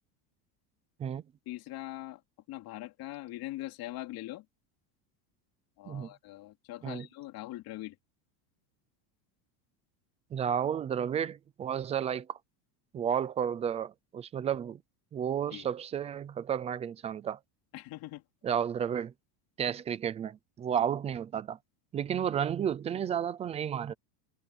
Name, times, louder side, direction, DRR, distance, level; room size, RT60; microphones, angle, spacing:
voice 1, 1.5-2.2 2.5-4.4 5.8-7.9 15.5-15.7 17.7-18.2, left 16 dB, 45° left, 3.2 m, -42 dB
voice 2, 10.3-12.4 12.9-14.8 15.1-17.4 18.4-19.1 19.6-21.6 21.9-23.9, right 8 dB, 15° right, 0.3 m, -32 dB
cardioid pair, 165°, 49 cm